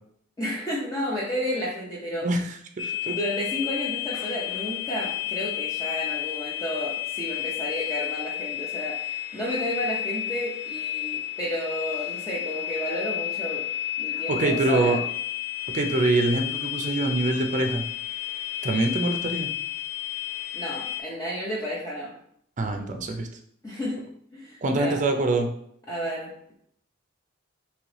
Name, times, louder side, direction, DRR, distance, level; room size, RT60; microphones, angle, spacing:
voice 1, 0.4-2.3 3.1-13.6 14.0-15.0 20.5-22.1 23.6-24.0 24.3-25.0 25.9-26.3, equal, 15° left, -6 dB, 0.6 m, -31 dB
sound 1, 2.8-21.0, left 12 dB, 75° left, 0.6 m, -32 dB
voice 2, 2.8-3.2 14.3-15.0 15.7-17.8 18.6-19.5 22.6-23.3 24.6-25.5, right 2 dB, 40° right, 5 dB, 0.5 m, -24 dB
3.7 x 3.0 x 3.2 m, 0.69 s
head